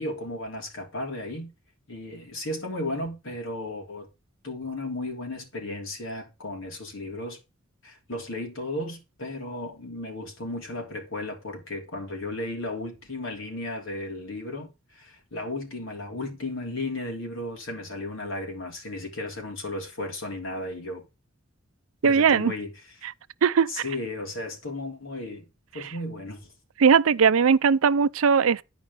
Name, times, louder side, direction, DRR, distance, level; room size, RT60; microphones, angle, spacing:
voice 1, 0.0-1.5 1.9-4.1 4.4-7.4 7.8-21.1 22.0-22.7 23.7-25.4 25.7-26.5, left 2 dB, 65° left, 3.1 m, -34 dB
voice 2, 22.0-22.5 23.0-23.1 23.4-23.8 26.8-28.6, right 6 dB, 80° right, 0.5 m, -19 dB
11.5 x 4.9 x 5.2 m
head